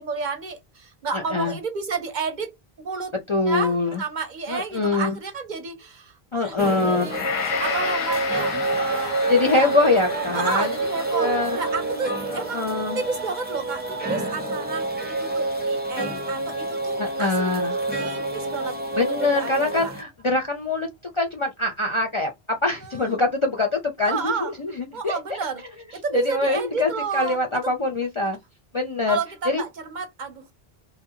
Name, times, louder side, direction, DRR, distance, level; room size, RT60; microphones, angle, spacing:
voice 1, 0.0-3.1 3.5-7.2 7.6-9.7 10.3-12.7 12.9-18.8 19.1-19.9 22.8-23.2 24.1-24.5 24.9-25.6 25.9-27.4 29.1-30.5, right 4 dB, 55° right, 0.7 m, -31 dB
voice 2, 1.1-1.5 3.3-4.0 4.5-5.2 6.3-7.2 9.3-10.7 11.2-11.6 12.5-13.0 17.0-17.8 19.0-20.9 21.1-25.4 26.1-28.4 28.7-29.2 29.5-29.6, left 3 dB, 45° left, 0.4 m, -24 dB
sound 1, 6.6-20.0, right 2 dB, 10° right, 0.5 m, -28 dB
Gong, 7.1-15.4 15.9-16.0, left 7 dB, 85° left, 0.9 m, -34 dB
2.8 x 2.1 x 2.7 m
omnidirectional pair, 1.0 m